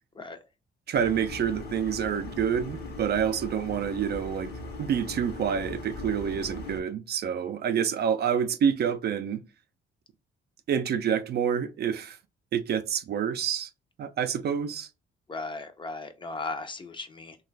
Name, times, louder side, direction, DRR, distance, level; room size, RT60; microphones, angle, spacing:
sound 1, 0.9-6.8, left 3 dB, 55° left, 0.9 m, -39 dB
voice 1, 0.9-4.5 4.8-9.4 10.7-12.2 12.5-13.7 14.0-14.9, right 8 dB, 55° right, 0.4 m, -27 dB
voice 2, 15.3-17.4, left 3 dB, 25° left, 0.5 m, -36 dB
3.1 x 2.3 x 3.1 m
cardioid pair, 90°, 20 cm